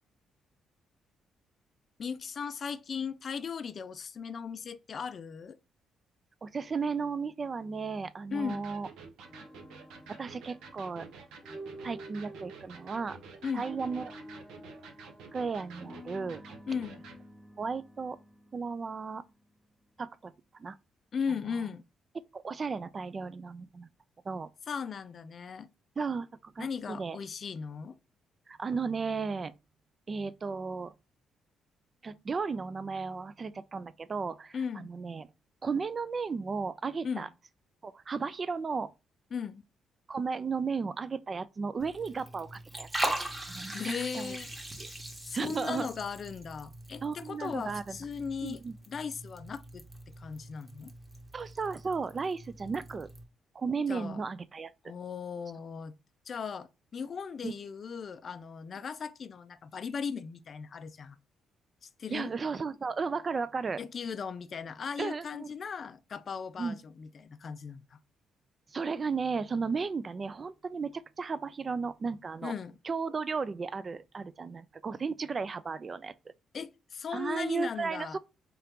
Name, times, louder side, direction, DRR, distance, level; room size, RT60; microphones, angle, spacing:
voice 1, 2.0-5.6 8.3-8.6 13.4-13.7 16.7-17.0 21.1-21.8 24.7-25.7 26.6-28.0 34.5-34.9 37.0-37.3 39.3-39.6 43.7-44.5 45.2-49.8 50.2-50.9 53.9-54.2 54.8-55.9 56.3-61.2 61.8-62.3 63.8-68.0 72.4-72.8 76.5-78.2, left 6 dB, 50° left, 0.3 m, -37 dB
voice 2, 6.4-8.9 10.2-11.1 11.8-13.2 13.5-14.1 15.3-16.4 17.6-18.2 18.5-19.2 20.0-20.8 22.3-23.9 24.3-24.5 26.0-27.2 28.5-29.5 30.1-30.9 32.0-35.3 35.6-37.3 37.8-38.9 40.1-43.1 43.5-43.8 44.1-44.4 44.8-44.9 45.3-45.9 47.0-48.0 48.4-48.7 51.3-53.1 53.5-54.7 57.4-57.5 62.1-63.8 65.0-65.5 66.6-66.7 68.7-72.5 72.8-76.1 77.1-78.2, right 5 dB, 35° right, 0.3 m, -34 dB
Electric guitar, 8.5-17.2, right 5 dB, 90° right, 0.8 m, -50 dB
sound 1, 9.2-19.3, equal, 5° left, 0.6 m, -50 dB
Liquid, 41.8-53.2, right 1 dB, 20° right, 1.0 m, -41 dB
3.8 x 2.8 x 3.5 m
cardioid pair, 90°, 0 cm